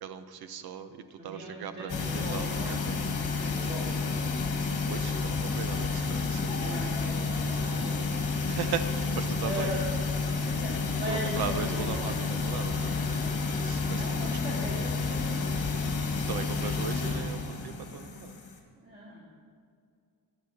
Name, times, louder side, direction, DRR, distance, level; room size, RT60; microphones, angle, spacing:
voice 1, 0.0-3.2 4.9-6.8 8.5-9.7 11.1-14.6 16.3-18.4, right 8 dB, 75° right, 10 dB, 0.8 m, -38 dB
voice 2, 1.2-2.7 3.2-4.2 6.6-8.0 9.4-9.9 10.4-12.3 13.9-15.3 18.8-19.2, equal, 25° right, -8 dB, 2.2 m, -39 dB
sound 1, 1.9-18.6, left 4 dB, 60° left, 1.8 m, -30 dB
sound 2, 6.5-7.6, left 2 dB, 30° left, 1.7 m, -45 dB
18.0 x 9.9 x 2.8 m, 2.2 s
cardioid pair, 180°, 38 cm